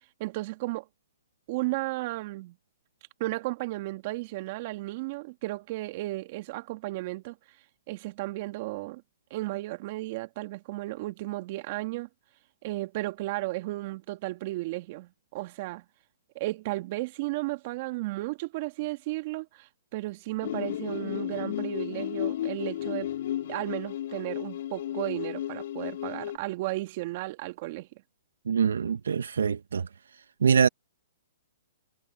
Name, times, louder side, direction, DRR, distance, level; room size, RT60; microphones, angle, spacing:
voice 1, 0.2-0.8 1.5-2.6 3.2-7.4 7.9-9.0 9.3-12.1 12.6-15.8 16.4-23.1 23.4-27.9, right 19 dB, 45° right, 2.1 m, -34 dB
sound 1, 20.4-26.4, left 12 dB, 60° left, 3.7 m, -33 dB
voice 2, 28.5-29.9 30.4-30.7, right 6 dB, 80° right, 0.8 m, -24 dB
hypercardioid pair, 140°, 0 cm